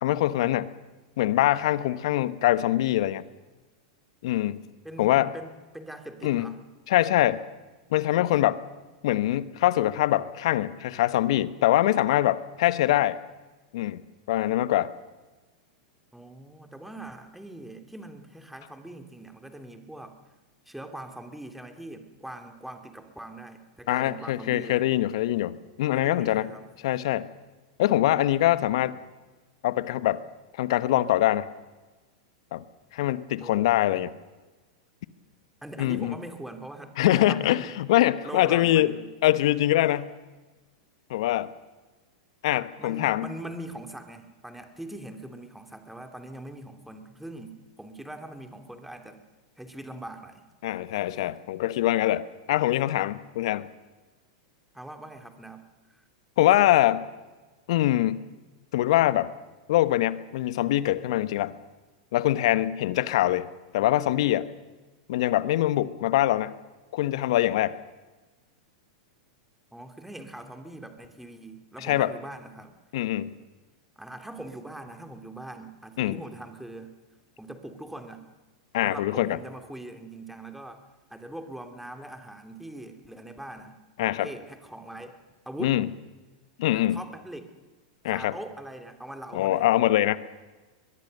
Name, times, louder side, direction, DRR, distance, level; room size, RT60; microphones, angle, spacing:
voice 1, 0.0-0.7 1.2-3.2 4.2-4.6 5.0-5.3 6.2-6.5 6.9-7.4 7.9-8.6 9.0-13.2 13.7-14.0 14.3-14.9 23.9-26.5 26.8-27.3 27.8-29.0 29.6-30.2 30.6-31.5 32.5-32.6 32.9-34.1 35.8-36.1 37.0-38.9 39.2-40.1 41.1-41.5 42.4-43.3 50.6-53.7 56.4-57.0 57.7-58.2 58.7-59.3 59.7-61.5 62.1-63.5 63.7-64.5 65.1-66.5 66.9-67.8 71.8-72.1 72.9-73.3 76.0-76.2 78.7-79.4 84.0-84.3 85.6-85.9 86.6-87.0 88.0-88.3 89.3-90.2, left 14 dB, 60° left, 15 dB, 1.1 m, -23 dB
voice 2, 4.8-6.6 16.1-20.2 20.6-24.9 25.9-26.8 33.4-33.8 35.6-37.8 38.2-39.1 42.8-49.2 49.6-50.4 54.7-55.6 55.9-56.0 69.7-72.7 74.0-77.0 77.4-78.3 78.8-80.8 81.1-85.2 85.4-85.8 86.7-87.5 88.1-89.7, right 1 dB, 5° right, 6 dB, 2.9 m, -42 dB
22.5 x 22.0 x 6.7 m, 1.2 s
hypercardioid pair, 100°, 3 cm